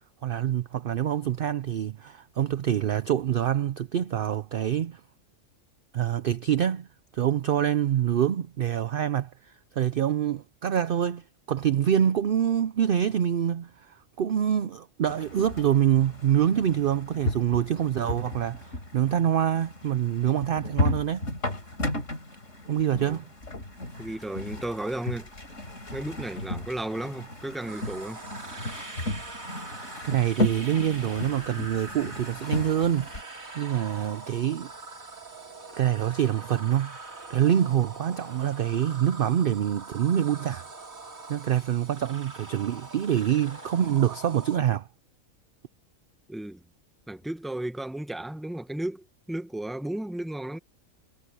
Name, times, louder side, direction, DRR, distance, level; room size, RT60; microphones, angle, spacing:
voice 1, 0.2-5.0 5.9-6.9 7.1-21.3 22.7-23.3 30.0-33.1 33.5-34.7 35.7-37.0 37.3-40.6 41.3-44.9, right 10 dB, 55° right, 0.6 m, -26 dB
sound 1, 15.1-33.2, left 1 dB, 65° left, 4.7 m, -34 dB
voice 2, 24.0-25.3 25.9-28.2 29.0-29.2 46.3-46.6 47.1-50.6, right 1 dB, ahead, 1.0 m, -34 dB
sound 2, 27.7-44.6, right 3 dB, 85° right, 3.4 m, -43 dB
omnidirectional pair, 1.4 m